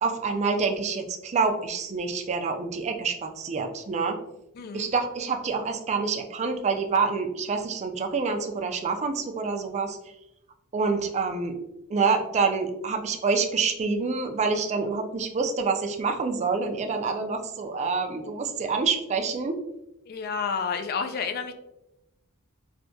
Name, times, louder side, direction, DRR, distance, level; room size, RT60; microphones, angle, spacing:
voice 1, 0.0-4.2 4.7-10.0 10.7-11.5 11.9-19.5, right 4 dB, 30° right, 5 dB, 0.3 m, -27 dB
voice 2, 4.6-4.9 20.1-21.5, left 5 dB, 45° left, 8 dB, 0.3 m, -30 dB
3.3 x 2.7 x 2.6 m, 0.88 s
head